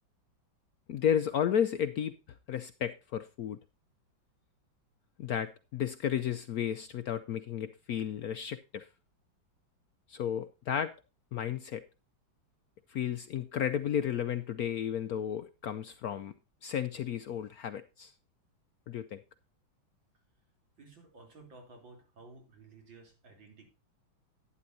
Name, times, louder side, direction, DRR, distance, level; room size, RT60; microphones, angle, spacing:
voice 1, 0.9-2.1 2.5-3.6 5.2-8.9 10.1-10.9 11.3-11.8 12.9-16.3 16.6-18.1 18.9-19.2, left 9 dB, 70° left, 0.9 m, -33 dB
voice 2, 20.8-23.7, right 3 dB, 75° right, 4.2 m, -54 dB
11.5 x 10.5 x 2.7 m
omnidirectional pair, 2.1 m